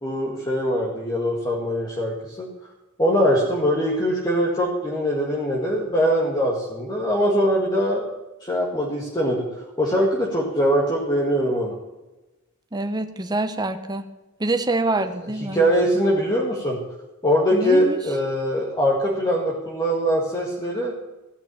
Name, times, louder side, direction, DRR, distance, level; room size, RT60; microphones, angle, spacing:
voice 1, 0.0-2.5 3.0-8.1 8.4-9.4 9.8-11.7 15.5-16.8 17.2-20.9, equal, 20° left, -4 dB, 1.9 m, -22 dB
voice 2, 12.7-14.1 14.4-15.6 17.5-18.0, right 2 dB, 20° right, 7 dB, 0.8 m, -25 dB
15.0 x 6.0 x 8.8 m, 1.1 s
head